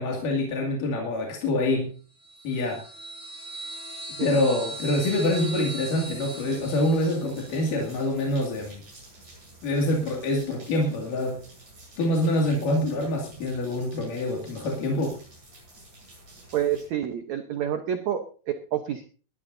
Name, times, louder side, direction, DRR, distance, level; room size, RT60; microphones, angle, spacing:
voice 1, 0.0-1.9 2.4-2.8 4.2-8.8 9.6-11.4 12.0-15.2, left 1 dB, 55° left, -1 dB, 3.7 m, -26 dB
sound 1, 2.2-7.7, right 2 dB, 5° left, 4.3 m, -39 dB
sound 2, 4.7-16.9, right 2 dB, 40° right, 9.3 m, -50 dB
voice 2, 16.5-19.0, right 10 dB, 80° right, 6 dB, 1.6 m, -28 dB
21.0 x 13.5 x 2.7 m, 0.37 s
omnidirectional pair, 4.8 m